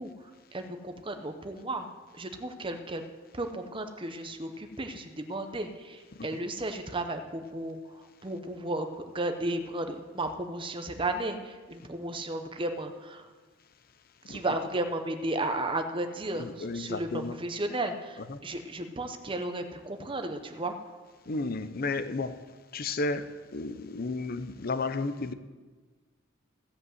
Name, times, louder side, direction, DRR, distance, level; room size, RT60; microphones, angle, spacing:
voice 1, 0.0-1.9 2.1-3.0 3.3-13.3 14.3-21.0, right 2 dB, 25° right, 0.9 m, -34 dB
voice 2, 16.4-17.4 18.3-18.4 21.3-22.4 22.7-25.3, left 3 dB, 45° left, 0.6 m, -33 dB
16.0 x 5.4 x 7.9 m
head